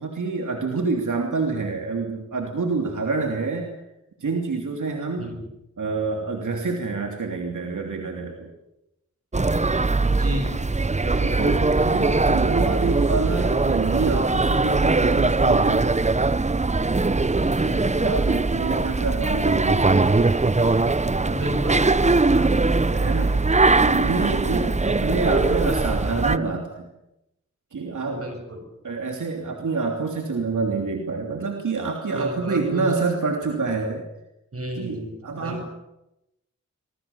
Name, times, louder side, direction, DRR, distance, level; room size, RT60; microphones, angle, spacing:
voice 1, 0.0-3.7 4.2-5.3 5.8-8.5 11.0-15.9 17.6-20.2 22.9-23.4 23.7-26.9 27.7-28.2 28.8-34.0 34.7-35.6, right 4 dB, 80° right, 2 dB, 3.1 m, -27 dB
sound 1, 9.3-26.4, right 3 dB, 25° right, 0.8 m, -21 dB
voice 2, 10.0-10.7 11.1-11.4 17.4-18.0 21.2-22.5 24.9-25.2 28.0-28.6 32.1-32.9 34.5-35.7, equal, 50° right, 6 dB, 7.3 m, -33 dB
25.5 x 22.0 x 7.2 m, 0.89 s
cardioid pair, 55°, 30 cm